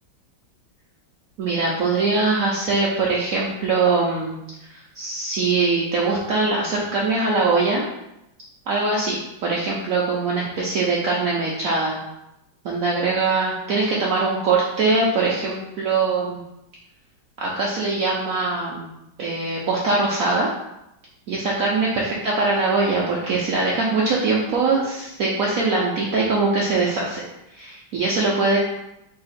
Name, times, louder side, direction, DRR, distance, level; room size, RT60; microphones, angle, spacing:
voice 1, 1.4-4.4 4.7-7.8 8.7-12.0 12.6-16.4 17.4-18.9 19.2-20.5 21.3-27.2 27.5-28.6, right 3 dB, 90° right, -4 dB, 0.7 m, -22 dB
3.4 x 2.8 x 4.0 m, 0.87 s
omnidirectional pair, 2.1 m